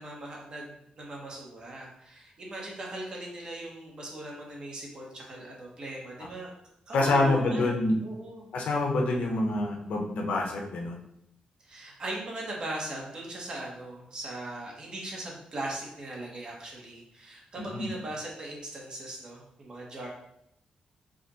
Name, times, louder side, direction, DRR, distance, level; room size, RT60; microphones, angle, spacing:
voice 1, 0.0-6.5 6.9-8.5 11.6-20.1, right 1 dB, 40° right, -3 dB, 1.2 m, -39 dB
voice 2, 6.9-8.0 8.5-11.0 17.6-17.9, left 2 dB, 85° left, 1 dB, 0.9 m, -26 dB
5.1 x 2.5 x 4.2 m, 0.77 s
wide cardioid pair, 170°, 2 cm